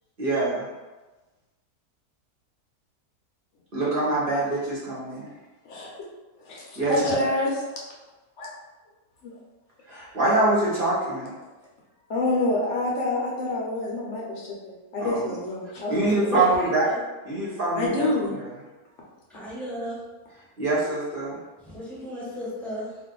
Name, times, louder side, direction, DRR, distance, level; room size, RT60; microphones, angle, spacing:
voice 1, 0.2-0.7 3.7-5.3 6.8-7.3 9.9-11.3 15.0-15.3 15.9-16.9 17.2-18.5 20.6-21.4, right 2 dB, 45° right, -6 dB, 0.9 m, -25 dB
voice 2, 6.4-7.6 8.4-8.5 9.2-9.3 12.1-16.5 17.7-18.4, left 2 dB, 60° left, -3 dB, 0.9 m, -27 dB
voice 3, 16.0-17.0 19.3-20.0 21.6-23.0, equal, ahead, -8 dB, 0.8 m, -34 dB
2.6 x 2.5 x 3.7 m, 1.1 s
omnidirectional pair, 1.6 m